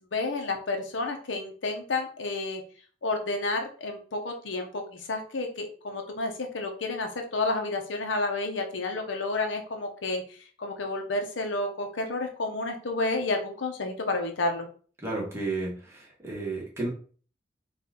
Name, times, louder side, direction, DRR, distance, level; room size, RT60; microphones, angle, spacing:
voice 1, 0.1-2.6 3.0-10.2 10.6-14.7, left 2 dB, 90° left, 4 dB, 0.8 m, -30 dB
voice 2, 15.0-16.9, right 2 dB, 15° right, -4 dB, 1.5 m, -32 dB
4.2 x 2.5 x 3.7 m, 0.42 s
head